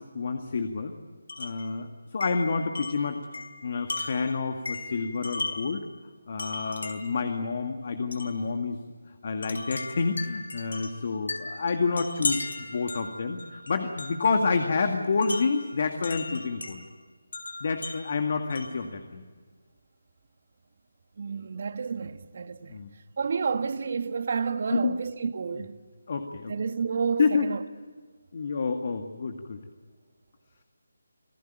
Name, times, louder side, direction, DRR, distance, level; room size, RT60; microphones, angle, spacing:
voice 1, 0.1-0.9 1.4-3.2 3.6-5.8 6.3-8.8 9.2-16.8 17.6-19.2 22.7-22.9 24.7-24.9 26.1-26.5 27.2-27.5 28.3-29.6, left 4 dB, 50° left, 2.1 m, -28 dB
Wind chime, 1.3-1.7 2.2-5.8 6.4-7.2 8.1-8.4 9.4-14.4 15.2-16.8 17.3-18.9, left 3 dB, 75° left, 4.7 m, -36 dB
voice 2, 21.2-22.8 23.2-25.8 26.5-27.6, right 5 dB, 50° right, 1.5 m, -30 dB
27.5 x 16.0 x 9.2 m
figure-of-eight pair, 160°, 0 cm